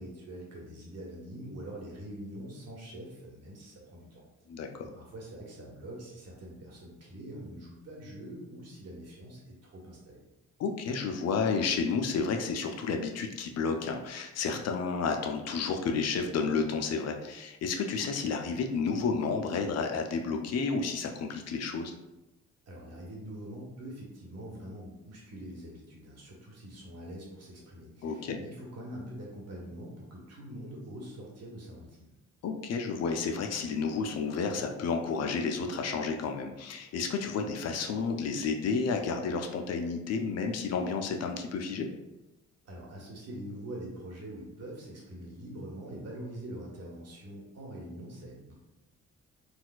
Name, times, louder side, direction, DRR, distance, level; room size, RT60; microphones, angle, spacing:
voice 1, 0.0-4.2 4.9-10.2 22.7-32.1 42.6-48.5, right 1 dB, 55° right, -3 dB, 1.3 m, -44 dB
voice 2, 4.5-4.9 10.6-21.9 28.0-28.4 32.4-41.9, left 5 dB, 55° left, 4 dB, 0.5 m, -31 dB
4.0 x 2.4 x 2.3 m, 0.99 s
cardioid pair, 90°, 30 cm